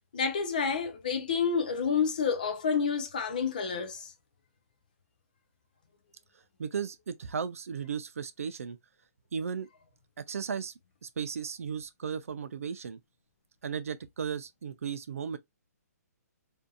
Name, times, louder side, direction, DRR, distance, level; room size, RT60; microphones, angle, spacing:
voice 1, 0.1-4.1, left 6 dB, 30° left, 0.4 m, -29 dB
voice 2, 6.6-8.8 9.3-9.7 10.2-10.7 11.0-13.0 13.6-15.4, right 6 dB, 55° right, 0.4 m, -35 dB
2.7 x 2.5 x 2.2 m
hypercardioid pair, 180°, 9 cm